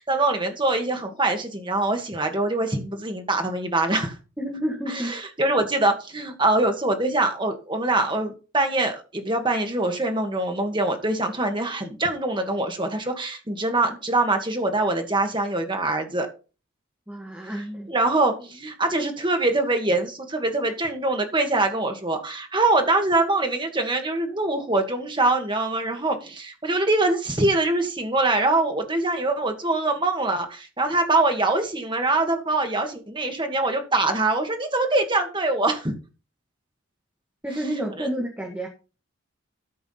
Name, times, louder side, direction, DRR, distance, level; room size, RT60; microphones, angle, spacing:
voice 1, 0.0-4.1 4.9-16.3 17.9-35.9 38.0-38.1, right 2 dB, 25° right, 1.8 m, -24 dB
voice 2, 4.4-5.2 17.1-17.9 37.4-38.7, right 1 dB, 10° right, 1.6 m, -30 dB
13.5 x 4.8 x 5.8 m
head